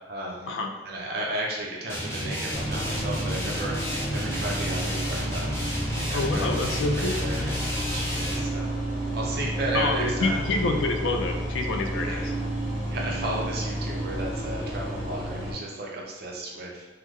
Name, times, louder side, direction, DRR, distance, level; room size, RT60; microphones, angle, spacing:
voice 1, 0.1-0.5 0.8-3.8 4.1-5.7 6.0-8.7 9.1-10.4 12.0-12.2 12.9-16.9, right 1 dB, 55° right, -2 dB, 0.6 m, -34 dB
sound 1, 1.9-8.5, equal, 15° left, 0.6 m, -32 dB
sound 2, 2.5-15.5, right 1 dB, 35° right, 1.0 m, -31 dB
voice 2, 6.1-7.2 9.7-12.3, left 3 dB, 85° left, 4 dB, 0.4 m, -27 dB
3.8 x 2.0 x 3.1 m, 1.2 s
head